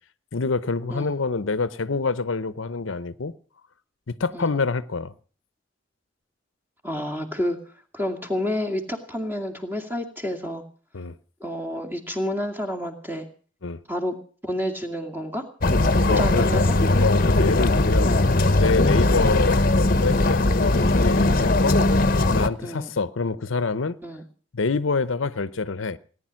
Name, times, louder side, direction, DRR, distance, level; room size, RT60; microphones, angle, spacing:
voice 1, 0.3-3.3 4.1-5.1 10.9-11.1 13.6-13.8 16.1-16.6 17.0-18.1 18.5-19.6 20.0-21.8 22.3-24.0 24.5-26.0, left 4 dB, 85° left, 0.8 m, -26 dB
voice 2, 6.8-7.6 7.9-10.6 11.4-13.3 13.9-14.1 14.4-15.4 16.1-16.8 22.6-22.9 24.0-24.2, equal, 10° right, 2.4 m, -29 dB
sound 1, 15.6-22.5, left 2 dB, 45° left, 1.0 m, -19 dB
18.5 x 10.0 x 7.5 m
head